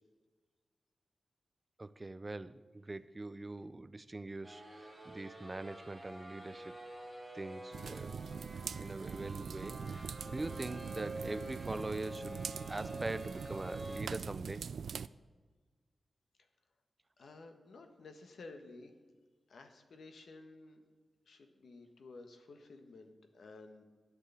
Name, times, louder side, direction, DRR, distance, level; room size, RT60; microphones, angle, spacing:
voice 1, 1.8-6.8 7.3-14.6, right 2 dB, 20° right, 15 dB, 0.5 m, -43 dB
sound 1, 4.4-14.0, right 1 dB, 5° right, 3.2 m, -48 dB
sound 2, 7.7-15.1, right 6 dB, 80° right, 0.3 m, -43 dB
voice 2, 17.2-18.9 19.5-20.8 21.3-23.8, left 3 dB, 75° left, 6 dB, 1.4 m, -53 dB
12.5 x 6.7 x 9.8 m, 1.4 s
wide cardioid pair, 145°, 0 cm